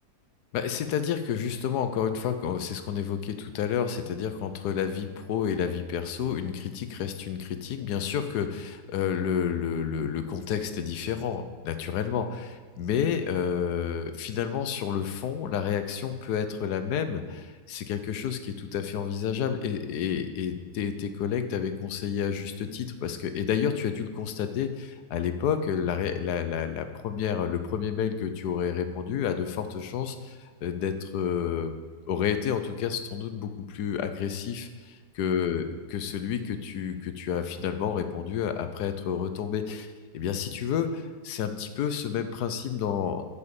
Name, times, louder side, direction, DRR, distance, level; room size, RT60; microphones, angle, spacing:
voice 1, 0.5-31.7 32.1-34.7 35.2-43.2, left 8 dB, 75° left, 9 dB, 1.3 m, -30 dB
8.5 x 6.8 x 7.0 m, 1.5 s
omnidirectional pair, 1.8 m